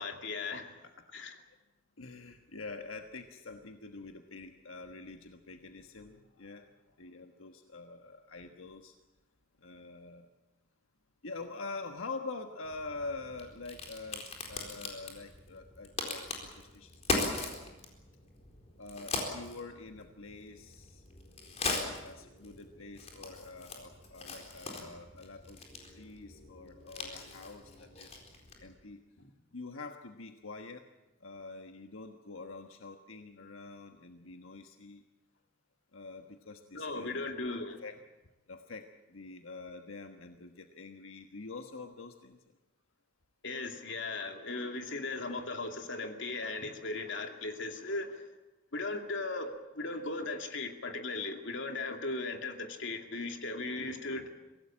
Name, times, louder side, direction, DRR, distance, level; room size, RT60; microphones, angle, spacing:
voice 1, 0.0-0.8 1.1-1.4 29.2-29.3 36.7-37.8 43.4-48.3 48.7-54.3, left 3 dB, 65° left, 4 dB, 2.5 m, -37 dB
voice 2, 2.0-9.0 9.6-10.3 11.2-17.6 18.8-21.0 21.7-25.6 25.9-28.2 28.6-29.0 29.5-30.9 31.2-35.0 35.9-37.2 37.8-37.9 38.5-42.4, left 3 dB, 90° left, 5 dB, 1.4 m, -46 dB
Crack, 12.6-28.7, left 3 dB, 35° left, 4.3 m, -40 dB
24.0 x 17.5 x 8.8 m, 1.1 s
head